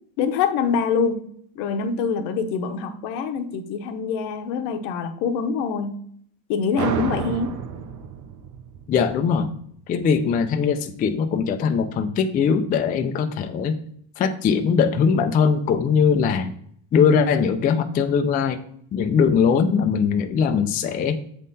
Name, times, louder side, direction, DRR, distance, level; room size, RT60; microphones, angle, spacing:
voice 1, 0.2-1.2 1.6-6.0 6.5-7.6, left 5 dB, 75° left, 8 dB, 0.9 m, -25 dB
sound 1, 6.8-10.1, right 6 dB, 45° right, 0.8 m, -31 dB
voice 2, 8.9-9.5 9.9-13.8 14.2-16.5 16.9-18.6 18.9-21.2, left 6 dB, 25° left, 7 dB, 0.3 m, -21 dB
7.5 x 3.7 x 4.0 m, 0.65 s
cardioid pair, 135°, 42 cm